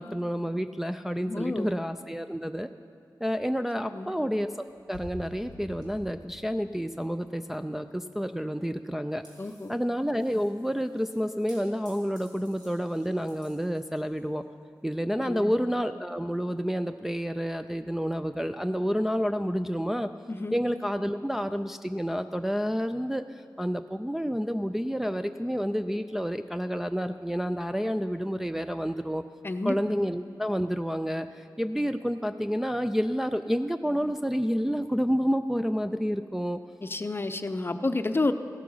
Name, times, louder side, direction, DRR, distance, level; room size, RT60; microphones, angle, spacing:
voice 1, 0.0-2.7 3.2-4.5 4.9-9.2 9.7-14.4 14.8-20.1 20.5-29.2 29.6-36.6, equal, 5° right, 7 dB, 0.3 m, -29 dB
voice 2, 1.3-1.7 3.9-4.2 9.4-9.7 15.2-15.5 20.3-20.6 29.4-29.8 36.8-38.3, left 2 dB, 35° left, 10 dB, 0.6 m, -30 dB
sound 1, 4.7-6.7 7.4-7.5 8.8-8.9 9.1-14.4 16.4-16.5, equal, 85° right, 3.2 m, -50 dB
15.5 x 7.5 x 5.5 m, 2.8 s
cardioid pair, 60°, 7 cm